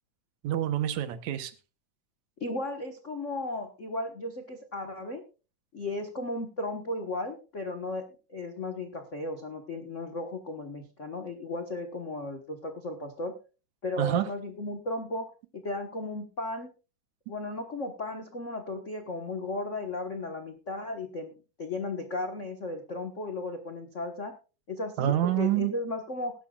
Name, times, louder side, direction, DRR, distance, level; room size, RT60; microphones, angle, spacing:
voice 1, 0.4-1.5 14.0-14.3 25.0-25.7, right 12 dB, 75° right, 2.3 m, -27 dB
voice 2, 2.4-5.2 5.7-8.0 8.3-13.3 13.8-15.2 15.5-16.7 17.3-21.3 21.6-24.3 24.7-26.3, left 2 dB, 60° left, 0.8 m, -35 dB
20.5 x 11.5 x 2.4 m
omnidirectional pair, 3.4 m